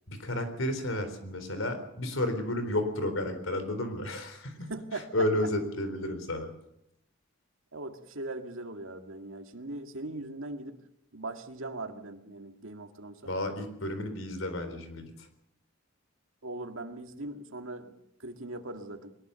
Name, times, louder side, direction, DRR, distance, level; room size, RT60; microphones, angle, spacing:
voice 1, 0.1-6.5 13.2-15.3, left 1 dB, 75° left, 9 dB, 4.0 m, -32 dB
voice 2, 4.7-5.3 7.7-10.8 11.1-13.2 16.4-19.2, right 2 dB, 75° right, 6 dB, 2.0 m, -40 dB
22.0 x 20.0 x 6.9 m, 0.80 s
head